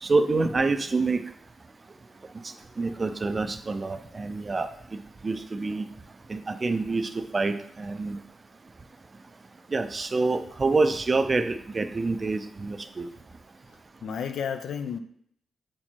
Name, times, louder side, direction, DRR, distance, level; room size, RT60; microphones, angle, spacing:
voice 1, 0.0-1.2 2.8-4.7 5.2-5.9 6.3-8.2 9.7-13.1, right 3 dB, 25° right, 9 dB, 0.4 m, -26 dB
voice 2, 13.7-15.0, left 7 dB, 80° left, 8 dB, 0.6 m, -33 dB
7.6 x 4.4 x 4.4 m, 0.67 s
wide cardioid pair, 160°, 0 cm